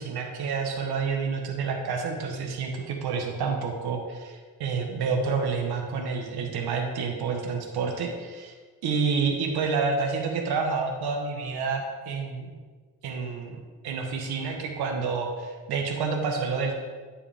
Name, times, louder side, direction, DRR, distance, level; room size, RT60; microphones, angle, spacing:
voice 1, 0.0-8.5 8.8-12.5 13.0-13.6 13.8-16.7, right 5 dB, 80° right, 2 dB, 1.2 m, -29 dB
11.5 x 4.9 x 3.5 m, 1.5 s
cardioid pair, 75°, 38 cm